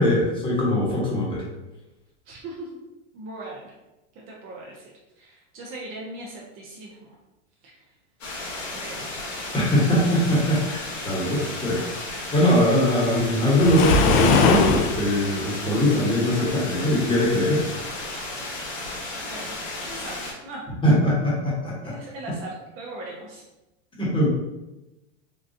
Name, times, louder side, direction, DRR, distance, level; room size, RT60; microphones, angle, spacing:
voice 1, 0.0-1.4 9.5-17.6 20.8-21.9 24.0-24.3, left 1 dB, 15° left, -5 dB, 1.1 m, -21 dB
voice 2, 2.3-2.8 3.1-3.7 4.1-4.8 5.2-7.2 7.6-7.8 8.7-9.0 19.2-20.6 21.8-23.4, right 2 dB, 35° right, -3 dB, 0.6 m, -39 dB
sound 1, 8.2-20.3, left 2 dB, 85° left, 1.3 m, -34 dB
Waves surf, 13.5-15.0, left 4 dB, 45° left, 0.4 m, -19 dB
3.9 x 2.3 x 2.5 m, 0.99 s
hypercardioid pair, 125°, 38 cm